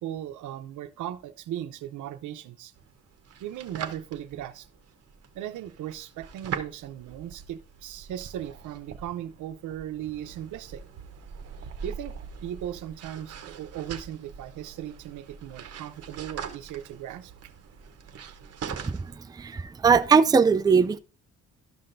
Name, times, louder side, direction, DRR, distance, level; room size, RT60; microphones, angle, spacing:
voice 1, 0.0-2.7 3.4-4.7 5.3-10.8 11.8-17.3, right 11 dB, 80° right, 0.7 m, -37 dB
sound 1, 2.8-19.2, right 6 dB, 55° right, 1.0 m, -42 dB
voice 2, 19.4-21.0, right 5 dB, 15° right, 0.4 m, -20 dB
12.0 x 5.8 x 2.6 m
cardioid pair, 90°, 30 cm